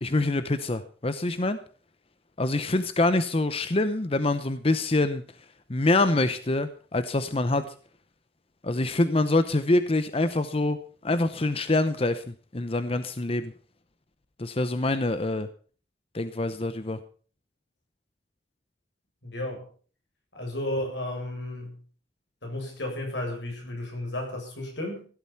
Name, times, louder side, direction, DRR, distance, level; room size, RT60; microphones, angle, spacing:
voice 1, 0.0-1.6 2.4-5.2 5.7-7.6 8.6-10.8 11.0-13.5 14.4-15.5 16.1-17.0, left 2 dB, 35° left, 11 dB, 0.8 m, -25 dB
voice 2, 19.2-19.7 20.3-21.7 22.4-25.1, left 1 dB, 80° left, 2 dB, 7.6 m, -33 dB
16.5 x 12.0 x 5.7 m, 0.42 s
head